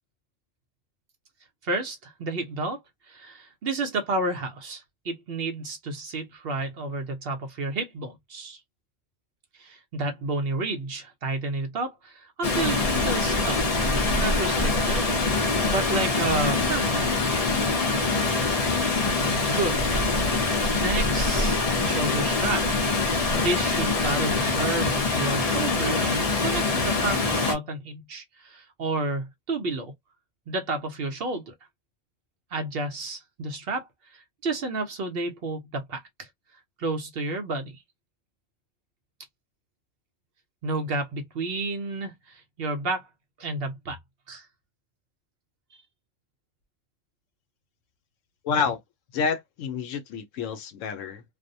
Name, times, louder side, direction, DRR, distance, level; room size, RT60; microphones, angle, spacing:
voice 1, 1.6-2.8 3.1-8.6 9.6-13.9 14.2-17.1 19.5-19.8 20.8-22.7 23.3-29.9 30.5-31.5 32.5-33.9 34.1-36.3 36.8-37.8 40.6-43.0 43.4-44.0 44.3-44.4 45.7-45.8, right 2 dB, 60° right, 0.7 m, -31 dB
Water, 12.4-27.5, left 3 dB, 35° left, 0.7 m, -24 dB
voice 2, 48.4-48.8 49.1-51.2, left 6 dB, 80° left, 1.0 m, -28 dB
2.5 x 2.0 x 2.5 m
omnidirectional pair, 1.3 m